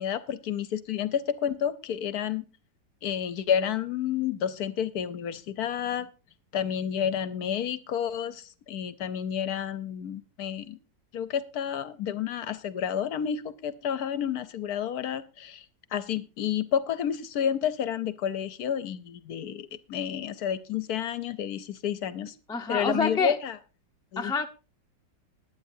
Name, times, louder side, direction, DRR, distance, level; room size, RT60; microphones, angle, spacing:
voice 1, 0.0-2.4 3.0-6.1 6.5-10.8 11.1-15.7 15.9-22.3 22.7-23.6 24.1-24.3, left 9 dB, 65° left, 15 dB, 1.1 m, -30 dB
voice 2, 22.5-23.4 24.2-24.5, left 4 dB, 5° left, 5 dB, 0.3 m, -27 dB
20.5 x 9.1 x 2.6 m, 0.33 s
omnidirectional pair, 2.0 m